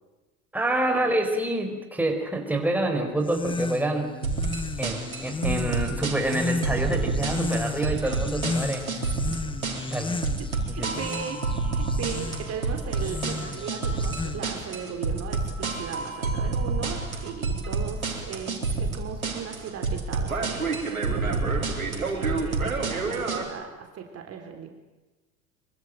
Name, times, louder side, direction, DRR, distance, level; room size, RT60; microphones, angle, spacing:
voice 1, 0.5-4.2 4.8-9.1 9.9-10.1 10.8-11.1, right 1 dB, 5° right, 3 dB, 4.9 m, -27 dB
sound 1, 3.2-14.7, left 3 dB, 10° left, 1.6 m, -34 dB
sound 2, 4.2-23.4, right 4 dB, 85° right, 4.4 m, -29 dB
voice 2, 10.4-11.4 11.7-24.7, right 7 dB, 35° right, 4 dB, 3.7 m, -38 dB
24.5 x 24.5 x 9.2 m, 1.2 s
figure-of-eight pair, 75°, 41 cm